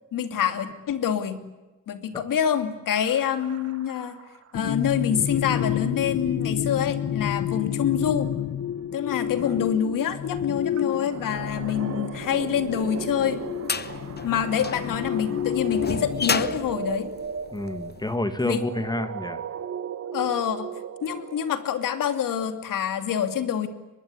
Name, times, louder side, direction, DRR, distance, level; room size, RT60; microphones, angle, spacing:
voice 1, 0.1-1.4 1.9-4.2 4.5-8.3 8.9-13.4 14.2-17.1 18.4-18.6 20.1-20.7 21.0-23.7, left 8 dB, 90° left, 9 dB, 2.7 m, -26 dB
sound 1, 2.9-4.8 7.8-21.8, right 7 dB, 50° right, 1.6 m, -37 dB
sound 2, 4.5-16.3, left 9 dB, 55° left, 1.3 m, -30 dB
sound 3, 12.6-18.0, left 5 dB, 30° left, 1.1 m, -31 dB
voice 2, 17.5-19.4, left 1 dB, 15° left, 10 dB, 1.9 m, -29 dB
24.0 x 22.5 x 9.8 m, 1.1 s
wide cardioid pair, 135°, 32 cm